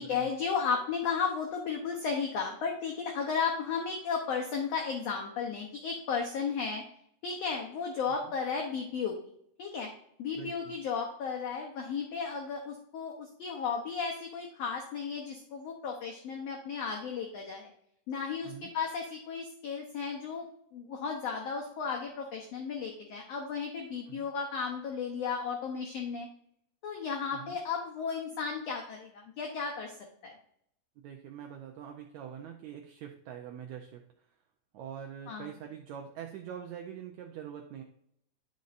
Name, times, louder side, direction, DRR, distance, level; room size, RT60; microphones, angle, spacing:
voice 1, 0.0-6.8 7.2-9.2 9.6-9.9 10.2-17.7 18.1-20.4 20.7-26.3 26.8-30.0 30.2-30.4 35.3-35.5, left 5 dB, 70° left, 1 dB, 1.6 m, -34 dB
voice 2, 10.3-10.7 18.4-18.7 24.1-24.3 27.3-27.6 31.0-34.3 34.7-37.8, right 9 dB, 80° right, 3 dB, 1.7 m, -44 dB
11.5 x 5.3 x 2.5 m, 0.72 s
omnidirectional pair, 3.8 m